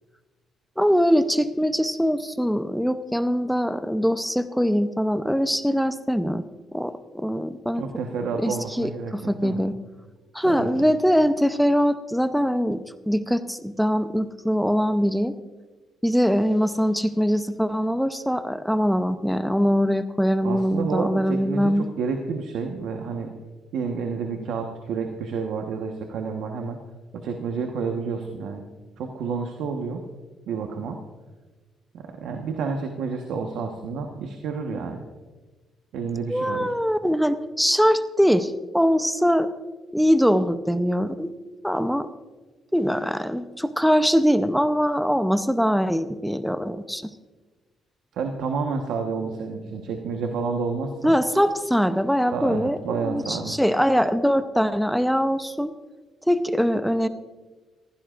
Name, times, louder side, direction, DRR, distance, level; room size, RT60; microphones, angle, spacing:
voice 1, 0.8-6.4 6.7-7.8 8.4-9.7 10.3-12.8 13.1-15.3 16.0-21.9 36.3-39.5 39.9-41.3 41.6-42.1 42.7-47.1 51.0-55.7 56.3-57.1, equal, ahead, 10 dB, 0.7 m, -22 dB
voice 2, 7.7-9.2 9.4-9.6 10.4-10.9 20.4-23.3 23.7-26.8 27.1-28.6 29.0-30.0 30.5-31.0 31.9-35.0 35.9-36.7 48.1-51.1 52.3-53.6, right 5 dB, 80° right, 3 dB, 1.2 m, -30 dB
22.5 x 15.5 x 2.5 m, 1.3 s
cardioid pair, 90°, 0 cm